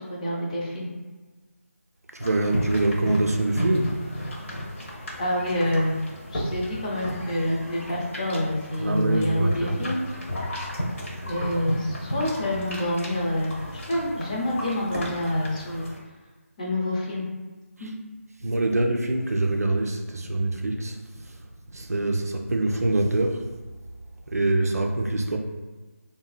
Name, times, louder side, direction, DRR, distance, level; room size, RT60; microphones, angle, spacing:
voice 1, 0.1-0.9 5.2-6.0 6.3-10.0 11.2-13.6 13.9-15.9 16.6-17.2 17.8-17.9, left 1 dB, 30° left, -4 dB, 0.5 m, -27 dB
voice 2, 2.1-3.9 8.8-9.9 11.5-11.6 18.4-21.0 21.7-23.5 24.3-25.4, right 2 dB, 85° right, 3 dB, 0.4 m, -24 dB
sound 1, 2.2-16.0, equal, 60° left, 0.8 m, -34 dB
2.8 x 2.6 x 2.3 m, 1.3 s
figure-of-eight pair, 160°, 8 cm